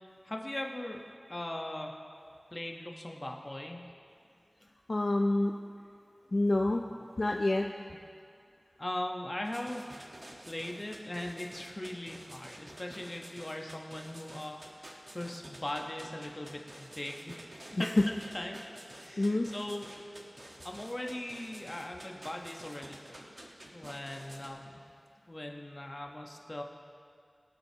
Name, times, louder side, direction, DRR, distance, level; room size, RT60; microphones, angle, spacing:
voice 1, 0.2-1.0 1.3-1.9 2.5-3.8 7.9-8.0 8.8-9.8 10.5-17.9 18.3-18.6 19.0-19.9 20.6-23.2 23.7-24.8 25.3-26.6, left 1 dB, 35° left, 1 dB, 1.1 m, -39 dB
voice 2, 4.9-5.5 6.3-6.8 7.2-7.7 17.8-17.9 19.2-19.5, left 2 dB, 65° left, 2 dB, 0.5 m, -27 dB
sound 1, 9.4-24.5, right 1 dB, 55° right, 1.4 m, -50 dB
22.0 x 7.8 x 2.9 m, 2.3 s
wide cardioid pair, 55°, 0 cm